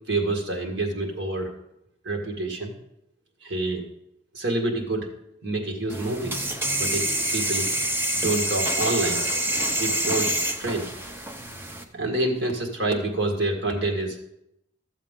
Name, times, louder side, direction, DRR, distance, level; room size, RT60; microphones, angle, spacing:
voice 1, 0.1-1.5 2.0-2.7 3.4-3.8 4.3-5.1 5.4-6.4 6.8-7.0 7.3-7.7 8.2-9.2 9.8-10.3 10.6-10.9 11.9-14.3, right 2 dB, 65° right, 1 dB, 1.8 m, -27 dB
sound 1, 5.9-11.8, right 1 dB, 10° right, 0.6 m, -27 dB
12.5 x 7.3 x 3.7 m, 0.81 s
head